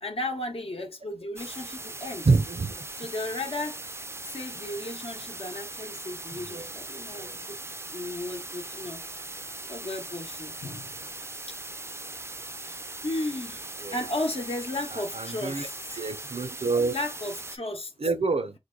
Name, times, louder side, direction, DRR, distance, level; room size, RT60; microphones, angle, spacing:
voice 1, 0.0-2.3 3.0-3.8 4.2-7.6 7.9-9.0 9.7-11.0 11.5-11.6 12.6-16.0 16.9-17.9, left 1 dB, 70° left, 0.8 m, -35 dB
sound 1, 1.4-17.6, right 2 dB, 25° right, 0.4 m, -40 dB
voice 2, 2.2-2.8 6.3-6.6 7.1-7.4 13.8-14.0 14.9-15.7 16.0-17.0 18.0-18.5, right 4 dB, 85° right, 0.6 m, -27 dB
3.2 x 2.2 x 3.7 m
wide cardioid pair, 50°, 10 cm